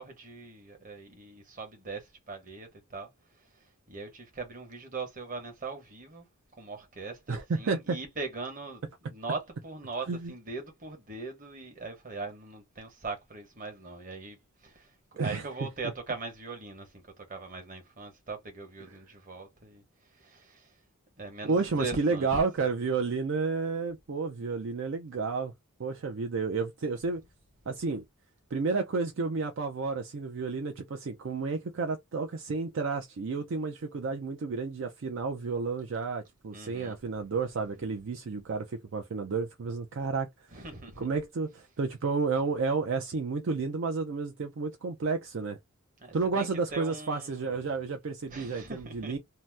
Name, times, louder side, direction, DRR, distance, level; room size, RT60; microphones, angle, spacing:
voice 1, 0.0-3.1 3.4-3.5 3.9-6.3 6.6-14.4 14.6-14.9 15.2-19.8 20.1-20.7 21.2-22.4 36.5-37.0 40.5-41.1 46.0-47.6 48.3-49.1, right 3 dB, 40° right, 1.0 m, -40 dB
voice 2, 7.3-8.0 10.1-10.3 15.2-15.4 18.9-19.0 21.4-25.5 25.8-27.2 27.7-28.0 28.5-40.3 41.0-45.6 46.1-49.2, right 4 dB, 60° right, 0.4 m, -31 dB
2.8 x 2.0 x 3.2 m
head